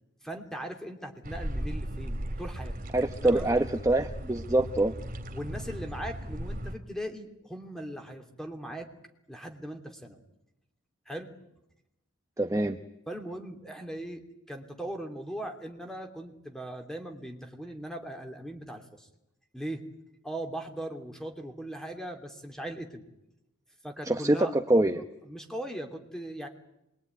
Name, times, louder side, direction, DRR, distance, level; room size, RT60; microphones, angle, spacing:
voice 1, 0.2-2.7 3.2-3.5 5.3-8.9 9.3-10.2 11.1-11.3 13.1-14.2 14.5-19.1 19.5-19.8 20.2-23.1 23.8-24.5 25.2-26.5, right 1 dB, ahead, 4 dB, 2.9 m, -39 dB
sound 1, 1.2-6.8, right 1 dB, 40° right, 2.6 m, -37 dB
voice 2, 2.9-4.9 12.4-12.8 24.1-25.0, right 1 dB, 15° right, 6 dB, 0.9 m, -25 dB
26.0 x 22.0 x 9.4 m, 0.86 s
head